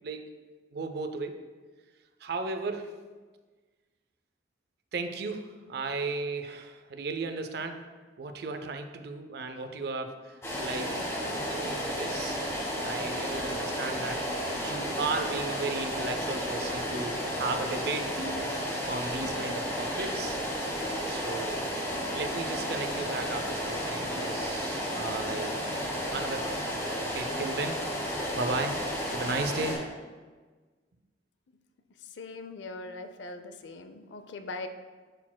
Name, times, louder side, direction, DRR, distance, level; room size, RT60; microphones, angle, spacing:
voice 1, 0.7-1.4 2.2-3.0 4.9-7.8 8.2-11.0 11.3-12.4 12.8-14.2 14.5-18.5 18.8-20.4 21.1-21.7 22.1-25.8 26.1-26.7 27.1-27.9 28.4-28.8 29.1-29.9, right 3 dB, 60° right, 7 dB, 0.5 m, -35 dB
sound 1, 10.4-29.7, equal, 15° left, 1.7 m, -32 dB
voice 2, 32.2-34.7, left 3 dB, 80° left, 8 dB, 0.5 m, -41 dB
10.0 x 4.2 x 2.2 m, 1.4 s
head